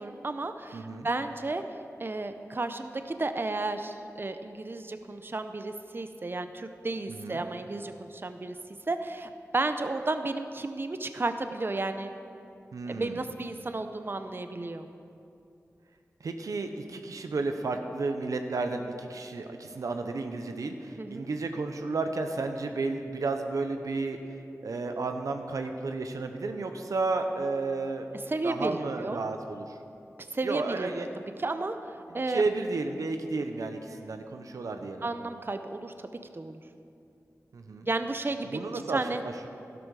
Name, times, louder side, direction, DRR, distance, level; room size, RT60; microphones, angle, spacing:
voice 1, 0.0-8.6 8.9-12.1 12.9-14.9 21.0-21.3 28.3-29.2 30.3-31.0 31.4-32.4 33.9-34.1 35.0-36.1 36.3-36.6 37.9-38.5 38.7-39.2, right 2 dB, 40° right, 8 dB, 0.7 m, -33 dB
voice 2, 0.7-1.1 7.1-7.4 12.7-13.2 16.2-24.2 24.6-28.1 28.4-29.8 30.4-31.1 32.1-35.1 37.5-37.9 38.5-39.5, right 3 dB, 90° right, 6 dB, 0.8 m, -32 dB
12.0 x 12.0 x 4.8 m, 2.6 s
cardioid pair, 50°, 6 cm